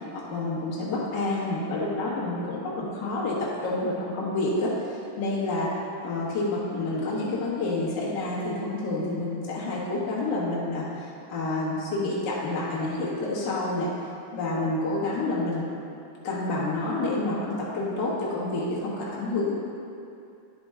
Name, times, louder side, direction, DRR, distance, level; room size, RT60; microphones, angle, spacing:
voice 1, 0.3-3.4 3.6-4.7 5.2-5.7 6.0-13.9 14.3-15.6 16.2-19.6, left 2 dB, 70° left, -7 dB, 1.0 m, -28 dB
10.0 x 4.4 x 3.6 m, 2.6 s
omnidirectional pair, 4.1 m